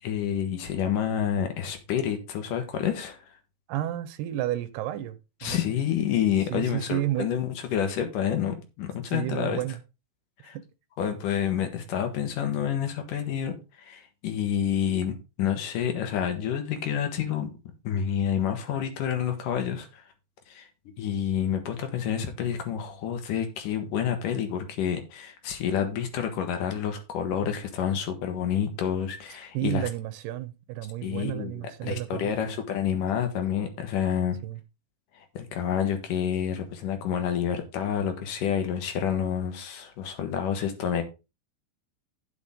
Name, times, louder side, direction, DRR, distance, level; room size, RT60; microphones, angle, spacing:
voice 1, 0.0-3.3 5.4-9.6 10.4-10.6 11.0-17.5 17.8-20.0 20.5-20.7 21.0-29.9 31.0-34.4 35.2-41.0, left 9 dB, 65° left, 2.7 m, -28 dB
voice 2, 3.7-5.6 6.5-7.3 9.1-9.8 10.4-10.6 27.4-27.5 29.5-32.5 34.4-34.6, right 14 dB, 90° right, 3.0 m, -31 dB
8.9 x 8.6 x 3.7 m
omnidirectional pair, 4.5 m